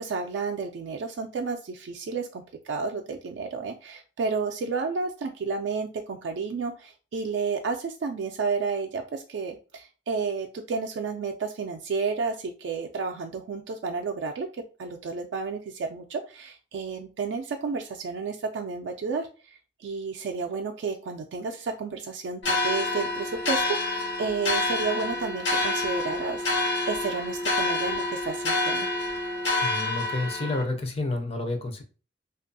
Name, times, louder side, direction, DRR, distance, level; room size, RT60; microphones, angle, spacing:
voice 1, 0.0-14.5 14.8-19.3 19.8-28.9, right 4 dB, 75° right, 4 dB, 0.3 m, -31 dB
sound 1, 22.4-30.6, left 2 dB, 75° left, 0.9 m, -28 dB
voice 2, 29.6-31.8, left 2 dB, 35° left, 5 dB, 0.4 m, -30 dB
2.5 x 2.3 x 2.5 m, 0.35 s
head